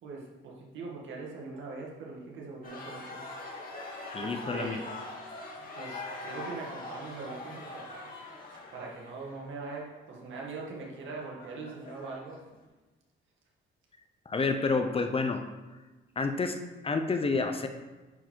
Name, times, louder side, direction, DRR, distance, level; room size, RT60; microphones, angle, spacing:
voice 1, 0.0-3.2 4.2-4.8 5.6-8.1 8.5-12.4, right 3 dB, 75° right, -2 dB, 2.0 m, -42 dB
sound 1, 2.6-12.6, left 2 dB, 45° left, 2.0 m, -43 dB
voice 2, 4.1-4.8 14.3-15.5 16.2-17.7, left 4 dB, 30° left, 6 dB, 0.8 m, -29 dB
10.5 x 4.6 x 4.6 m, 1.2 s
cardioid pair, 90°, 20 cm